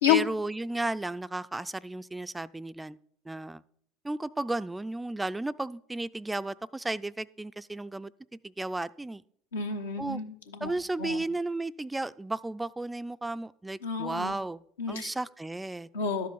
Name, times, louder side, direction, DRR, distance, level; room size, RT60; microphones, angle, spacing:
voice 1, 0.1-3.0 3.3-3.6 4.0-8.1 8.4-9.2 10.0-10.2 10.6-14.6 14.9-15.9, right 2 dB, 10° right, 16 dB, 0.3 m, -34 dB
voice 2, 9.5-10.7 11.0-11.2 13.8-14.3 14.8-15.1 15.9-16.3, left 8 dB, 85° left, 4 dB, 1.0 m, -29 dB
12.0 x 5.1 x 5.6 m, 0.68 s
hypercardioid pair, 75°, 0 cm